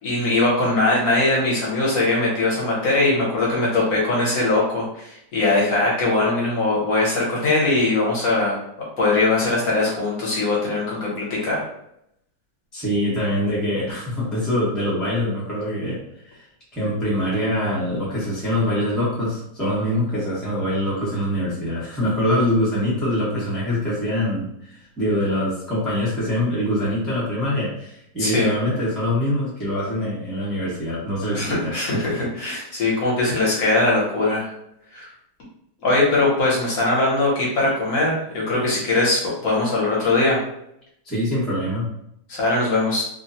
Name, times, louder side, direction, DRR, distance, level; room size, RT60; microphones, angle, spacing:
voice 1, 0.0-8.6 9.0-11.6 28.2-28.5 31.3-34.5 34.9-35.1 35.8-40.4 42.3-43.0, left 2 dB, 60° left, -4 dB, 1.2 m, -21 dB
voice 2, 12.7-16.4 16.7-32.0 32.7-32.8 41.0-41.9, left 1 dB, ahead, -8 dB, 0.8 m, -24 dB
3.0 x 2.0 x 2.7 m, 0.76 s
omnidirectional pair, 1.9 m